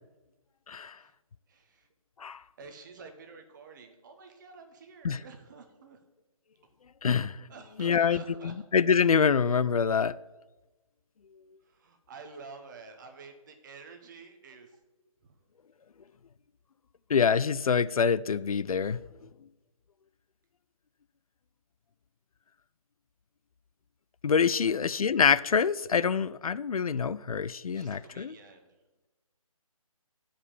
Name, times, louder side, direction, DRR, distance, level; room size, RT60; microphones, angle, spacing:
voice 1, 0.7-1.0 2.2-2.4 5.0-5.2 7.0-7.5 7.8-10.2 17.1-19.0 24.2-28.3, left 6 dB, 75° left, 0.4 m, -26 dB
voice 2, 1.5-1.9 2.6-6.0 7.5-8.5 11.6-14.8 15.2-15.3 24.6-24.8 27.7-28.7, right 4 dB, 35° right, 1.1 m, -49 dB
9.8 x 5.2 x 7.0 m
figure-of-eight pair, 155°, 18 cm